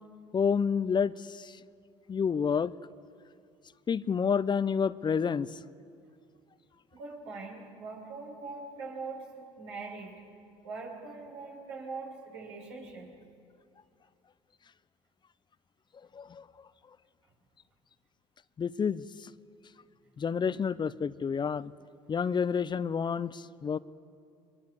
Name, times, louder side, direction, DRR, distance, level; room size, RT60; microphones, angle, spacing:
voice 1, 0.3-1.5 2.1-2.7 3.9-5.6 16.1-16.4 18.6-19.0 20.2-21.7 22.1-23.8, left 6 dB, 35° left, 17 dB, 0.7 m, -29 dB
voice 2, 6.9-10.2 10.6-13.1, right 4 dB, 85° right, -2 dB, 6.7 m, -42 dB
23.0 x 22.5 x 8.4 m, 2.5 s
hypercardioid pair, 60°, 14 cm